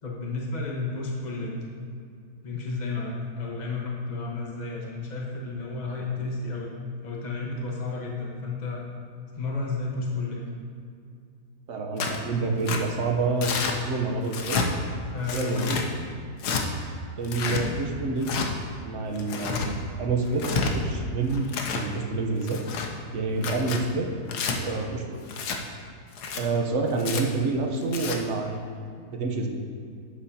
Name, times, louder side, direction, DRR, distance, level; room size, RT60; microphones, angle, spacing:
voice 1, 0.0-1.6 2.4-6.7 7.0-8.8 9.3-10.4 15.0-15.7, left 3 dB, 30° left, -2 dB, 1.2 m, -32 dB
voice 2, 11.7-13.6 13.8-14.6 15.3-15.8 17.2-18.4 18.8-21.5 21.7-22.6 23.1-24.1 24.3-25.2 26.4-28.8 29.1-29.5, right 3 dB, 55° right, 2 dB, 1.2 m, -28 dB
Tearing, 12.0-12.2 12.7-12.8 13.4-13.8 14.3-14.7 15.3-15.9 16.4-16.6 17.2-17.6 18.2-18.5 19.2-19.7 20.3-20.7 21.3-21.9 22.4-22.9 23.4-23.8 24.3-24.6 25.3-25.6 26.1-26.4 27.0-27.2 27.8-28.2, left 5 dB, 80° left, 1.4 m, -29 dB
11.5 x 8.1 x 2.8 m, 2.3 s
omnidirectional pair, 1.7 m